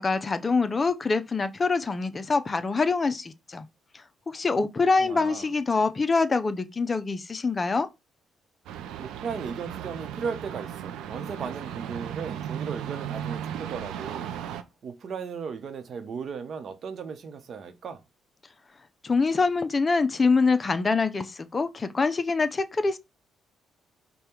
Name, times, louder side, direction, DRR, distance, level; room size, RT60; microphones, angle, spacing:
voice 1, 0.0-3.7 3.9-7.9 19.0-23.0, left 4 dB, 30° left, 0.5 m, -25 dB
voice 2, 5.0-5.5 9.0-14.3 14.8-18.0, right 6 dB, 55° right, 0.8 m, -36 dB
sound 1, 8.7-14.6, right 9 dB, 90° right, 0.5 m, -36 dB
5.2 x 2.2 x 4.4 m
cardioid pair, 90°, 0 cm